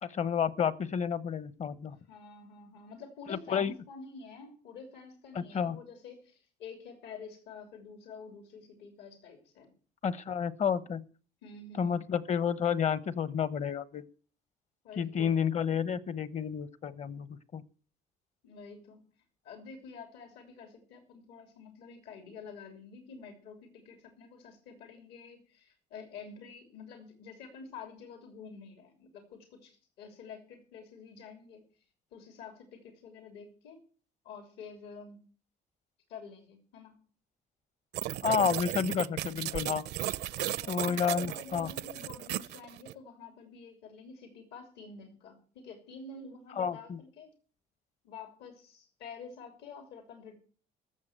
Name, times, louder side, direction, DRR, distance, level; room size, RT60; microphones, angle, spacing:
voice 1, 0.0-2.0 3.3-3.7 5.3-5.8 10.0-11.0 11.7-14.0 15.0-17.6 38.2-39.8 40.7-41.7 46.6-47.0, left 7 dB, 40° left, 0.9 m, -30 dB
voice 2, 2.1-9.7 11.4-12.0 14.8-15.4 18.4-19.1 19.4-31.7 32.1-33.8 34.2-35.2 36.1-37.0 40.4-47.3 48.0-50.4, left 5 dB, 80° left, 3.1 m, -48 dB
sound 1, 37.9-42.9, right 14 dB, 75° right, 0.6 m, -35 dB
14.0 x 7.1 x 7.8 m
cardioid pair, 110°, 17 cm